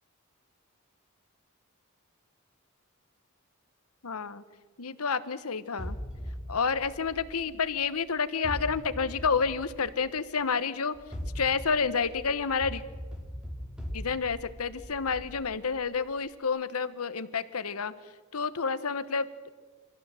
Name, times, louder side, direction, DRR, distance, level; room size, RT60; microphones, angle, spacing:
voice 1, 4.0-4.4 4.8-6.0 6.5-10.9 11.3-12.8 13.9-17.9 18.3-19.5, left 5 dB, 90° left, 14 dB, 1.1 m, -29 dB
sound 1, 5.8-7.9 8.4-10.3 10.9-16.0, equal, 5° right, 2.9 m, -40 dB
25.0 x 16.0 x 7.7 m, 1.4 s
head